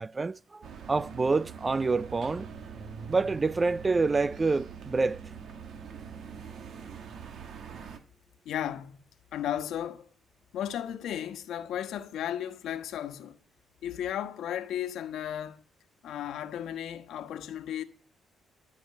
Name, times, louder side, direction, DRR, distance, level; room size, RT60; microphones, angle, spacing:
voice 1, 0.0-2.5 3.1-5.2, right 3 dB, 25° right, 0.5 m, -27 dB
sound 1, 0.6-8.0, right 6 dB, 65° right, 2.3 m, -43 dB
voice 2, 8.4-9.0 9.3-10.1 10.5-13.4 13.8-15.6 16.0-17.8, left 10 dB, 80° left, 1.4 m, -34 dB
13.5 x 6.3 x 8.8 m
cardioid pair, 90°, 0 cm